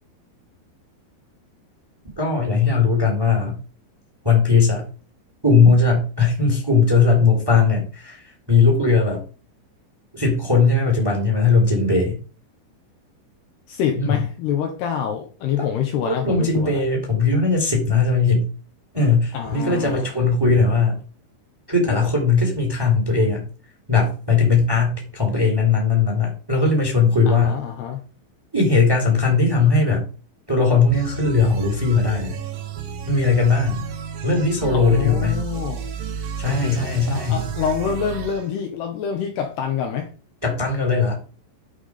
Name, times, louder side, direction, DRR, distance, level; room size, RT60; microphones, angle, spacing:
voice 1, 2.2-3.6 4.2-4.8 5.4-8.2 8.5-9.2 10.1-12.2 14.0-14.2 15.6-15.7 16.1-18.5 18.9-21.0 21.7-23.4 23.9-27.6 28.5-30.1 30.5-32.3 33.1-33.8 34.2-35.4 36.4-37.4 40.4-41.1, left 4 dB, 5° right, 1 dB, 2.9 m, -18 dB
voice 2, 13.7-16.8 19.3-20.1 27.3-28.0 34.7-35.8 36.5-40.1, left 8 dB, 70° left, 4 dB, 2.9 m, -26 dB
sound 1, 30.9-38.4, right 6 dB, 65° right, 2.5 m, -32 dB
10.5 x 6.0 x 5.0 m, 0.37 s
omnidirectional pair, 5.5 m